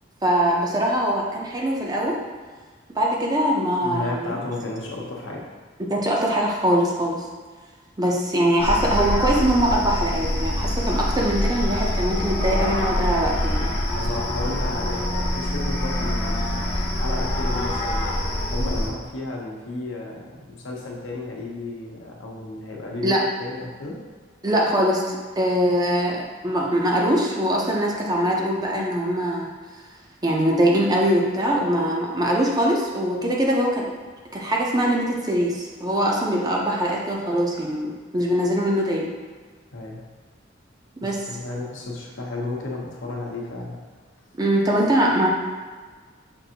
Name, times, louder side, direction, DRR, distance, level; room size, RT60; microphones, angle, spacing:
voice 1, 0.2-2.2 3.0-4.4 5.8-7.3 8.0-13.7 23.0-23.2 24.4-29.5 30.2-33.9 34.3-39.1 41.0-41.4 44.4-45.3, equal, 20° right, -2 dB, 0.5 m, -22 dB
voice 2, 3.8-5.5 6.3-6.4 13.4-13.6 13.9-18.0 18.5-23.1 23.4-24.0 39.7-40.0 41.0-43.8, left 2 dB, 85° left, -2 dB, 0.8 m, -33 dB
sound 1, 8.6-18.9, left 1 dB, 30° left, 0.5 m, -25 dB
5.3 x 2.5 x 2.8 m, 1.5 s
head